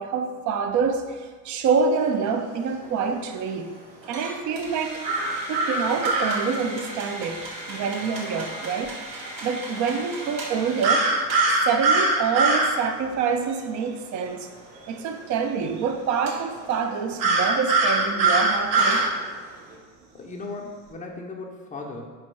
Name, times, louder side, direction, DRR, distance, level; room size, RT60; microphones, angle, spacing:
voice 1, 0.0-3.7 4.1-5.0 5.5-8.9 9.4-11.1 11.6-14.5 14.8-19.1, right 5 dB, 40° right, 6 dB, 0.5 m, -26 dB
sound 1, 2.0-19.8, right 1 dB, 85° right, 0.9 m, -40 dB
sound 2, 5.0-6.4 10.8-12.7 17.2-19.1, right 2 dB, 55° right, 0.8 m, -21 dB
voice 2, 20.1-22.1, left 3 dB, 15° left, 0 dB, 0.6 m, -37 dB
4.3 x 2.3 x 4.3 m, 1.5 s
hypercardioid pair, 60°, 49 cm